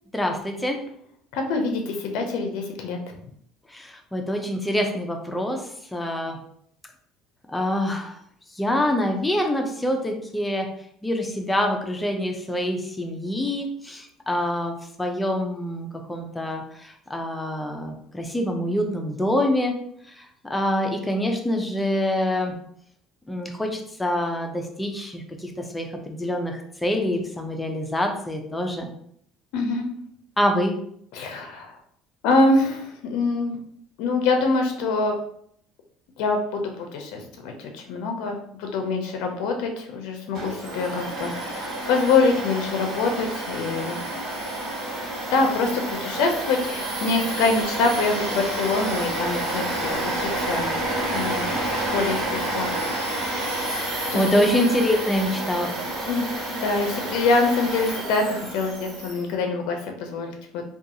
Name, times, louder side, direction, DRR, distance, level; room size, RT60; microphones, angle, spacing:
voice 1, 0.1-0.8 3.7-6.4 7.5-8.2 8.5-10.7 11.0-19.7 20.1-22.5 23.3-28.9 30.4-30.7 54.1-55.7, left 1 dB, 10° left, 3 dB, 0.4 m, -26 dB
voice 2, 1.3-3.0 29.5-29.9 31.1-31.8 32.2-33.6 34.0-35.2 36.2-44.2 45.3-50.8 51.1-52.7 53.0-53.1 54.1-54.4 56.1-60.6, left 3 dB, 75° left, 3 dB, 0.4 m, -25 dB
Domestic sounds home sounds, 40.3-59.2, right 1 dB, 55° right, 1.3 m, -29 dB
2.5 x 2.3 x 2.8 m, 0.67 s
cardioid pair, 125°, 0 cm